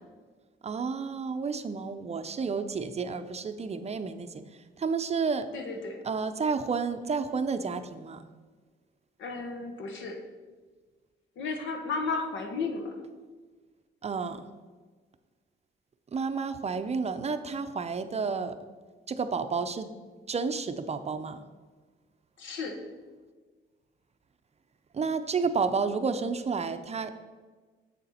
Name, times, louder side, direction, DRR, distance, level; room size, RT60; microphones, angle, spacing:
voice 1, 0.6-4.4 4.8-5.5 6.0-8.2 14.0-14.4 16.1-18.6 19.1-19.9 20.3-21.4 24.9-27.1, right 5 dB, 35° right, 9 dB, 0.5 m, -31 dB
voice 2, 5.5-6.0 9.2-10.2 11.4-13.0 22.4-22.8, left 4 dB, 75° left, 4 dB, 1.2 m, -34 dB
7.4 x 6.7 x 4.2 m, 1.4 s
cardioid pair, 90°, 20 cm